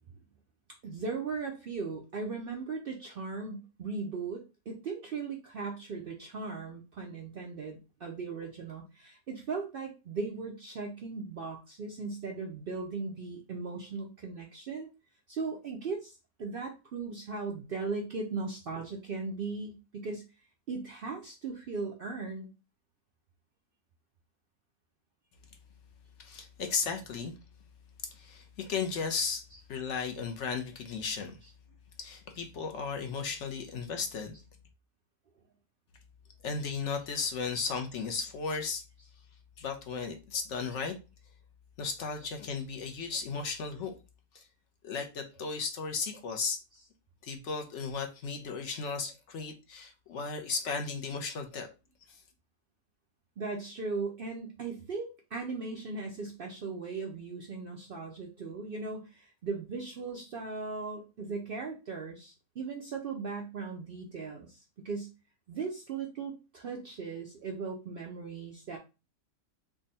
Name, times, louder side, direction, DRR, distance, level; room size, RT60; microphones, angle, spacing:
voice 1, 0.8-14.9 15.3-20.2 20.7-22.5 29.5-29.6 53.4-65.1 65.5-68.8, right 4 dB, 60° right, 0.6 m, -38 dB
voice 2, 26.2-27.3 28.1-29.4 29.7-31.4 32.0-34.4 36.4-38.8 39.6-41.0 41.8-43.9 44.3-44.5 44.8-46.6 47.2-51.7 52.1-52.2, left 5 dB, 65° left, 0.8 m, -35 dB
3.5 x 2.2 x 3.9 m
omnidirectional pair, 1.5 m